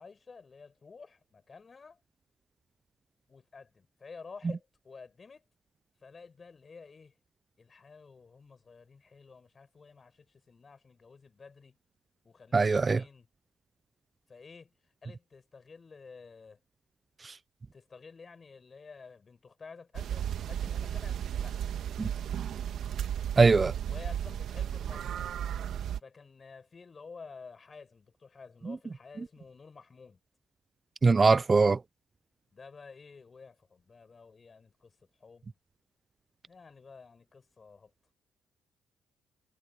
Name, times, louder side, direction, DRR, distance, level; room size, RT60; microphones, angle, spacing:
voice 1, 0.0-2.0 3.3-5.5 6.0-7.2 7.6-11.8 12.2-13.3 14.3-14.7 15.0-16.6 17.7-21.6 23.9-25.3 26.0-30.2 32.5-34.9 35.2-35.5 36.5-37.9, left 4 dB, 35° left, 6.6 m, -51 dB
voice 2, 12.5-13.0 23.4-23.7 31.0-31.8, right 4 dB, 30° right, 0.3 m, -21 dB
sound 1, 19.9-26.0, right 9 dB, 70° right, 1.4 m, -34 dB
cardioid pair, 90°, 0 cm